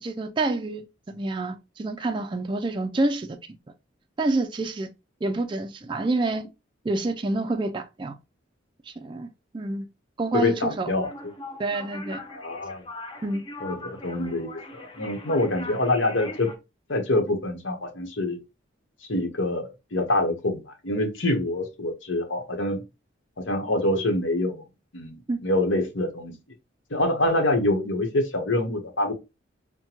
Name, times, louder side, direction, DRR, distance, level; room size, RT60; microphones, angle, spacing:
voice 1, 0.0-3.4 4.2-4.9 5.2-6.5 6.8-8.1 8.9-9.3 9.5-9.9 10.2-10.9 11.6-12.2 13.2-13.4 25.3-25.4, right 2 dB, 25° right, 0.3 m, -28 dB
voice 2, 10.3-11.1 12.3-12.8 13.6-16.5 16.9-18.4 19.1-22.8 23.4-24.6 24.9-26.3 26.9-29.1, left 2 dB, 75° left, 1.1 m, -25 dB
sound 1, 11.0-16.6, left 2 dB, 25° left, 0.6 m, -41 dB
5.5 x 2.2 x 2.9 m
head